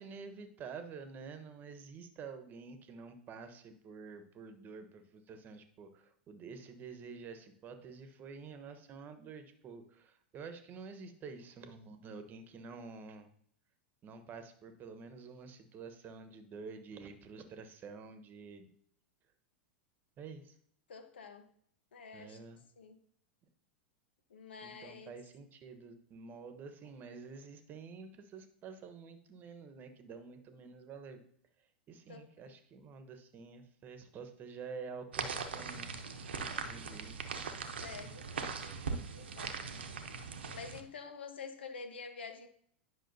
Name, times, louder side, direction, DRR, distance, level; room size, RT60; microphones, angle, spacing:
voice 1, 0.0-13.3 14.0-18.7 20.2-20.5 22.1-22.6 24.6-31.2 31.9-35.9 36.4-37.2 40.0-40.1, right 5 dB, 35° right, 8 dB, 1.1 m, -49 dB
voice 2, 20.9-21.4 21.9-22.4 22.8-23.0 24.3-25.1 32.1-32.2 37.8-38.6 39.1-39.6 40.5-42.5, left 5 dB, 80° left, 7 dB, 1.1 m, -47 dB
sound 1, 35.1-40.8, right 5 dB, 85° right, 0.9 m, -40 dB
10.0 x 6.0 x 2.7 m, 0.64 s
hypercardioid pair, 100°, 6 cm